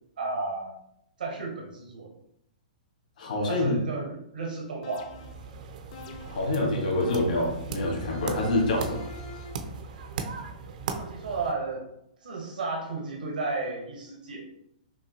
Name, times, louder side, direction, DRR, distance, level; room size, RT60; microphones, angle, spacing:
voice 1, 0.2-0.8 1.2-2.1 3.5-5.1 10.8-11.9 12.2-14.5, right 3 dB, 80° right, -2 dB, 1.2 m, -33 dB
voice 2, 3.2-3.8 6.3-9.1, left 1 dB, 70° left, -2 dB, 1.5 m, -26 dB
sound 1, 4.8-5.5 5.9-6.5 7.0-7.6 8.1-9.7, left 5 dB, 50° left, 0.6 m, -44 dB
sound 2, 5.0-11.5, right 5 dB, 60° right, 0.6 m, -38 dB
5.7 x 2.3 x 2.8 m, 0.77 s
hypercardioid pair, 130°, 5 cm